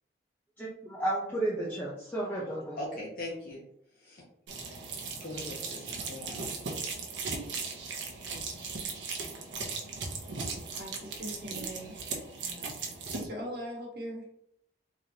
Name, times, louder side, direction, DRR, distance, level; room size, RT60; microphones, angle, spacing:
voice 1, 0.6-2.8, right 1 dB, 10° left, -6 dB, 0.6 m, -33 dB
voice 2, 2.8-3.6 3.9-4.2 5.2-6.5, left 1 dB, 50° left, -5 dB, 0.8 m, -40 dB
sound 1, 4.5-13.3, right 4 dB, 90° right, 0.8 m, -38 dB
voice 3, 10.7-11.9 12.4-12.7 13.1-14.3, equal, 55° right, -2 dB, 1.2 m, -40 dB
3.8 x 3.1 x 2.7 m, 0.71 s
head